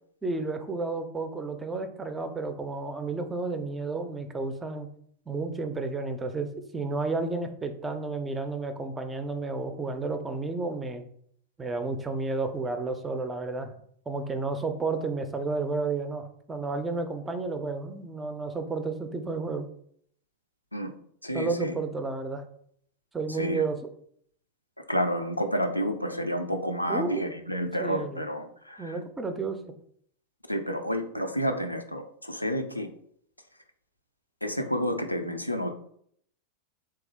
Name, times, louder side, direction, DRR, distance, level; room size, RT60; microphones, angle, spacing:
voice 1, 0.2-4.9 5.3-11.0 11.6-13.7 14.1-19.7 21.3-22.4 23.1-23.8 26.9-27.2 27.8-28.3 28.8-29.6, right 3 dB, 15° right, 7 dB, 0.5 m, -31 dB
voice 2, 21.2-21.7 23.3-23.6 24.8-28.9 30.5-32.9 34.4-35.7, equal, 90° left, 6 dB, 0.4 m, -30 dB
3.4 x 2.7 x 3.4 m, 0.65 s
figure-of-eight pair, 90°, 0 cm